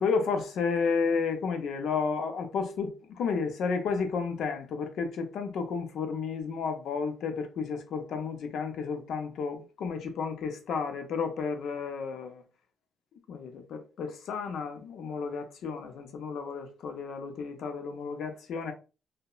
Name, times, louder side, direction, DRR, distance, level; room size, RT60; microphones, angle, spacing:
voice 1, 0.0-12.4 13.3-18.7, left 5 dB, 70° left, 0.5 m, -32 dB
2.8 x 2.1 x 2.3 m
cardioid pair, 90°, 0 cm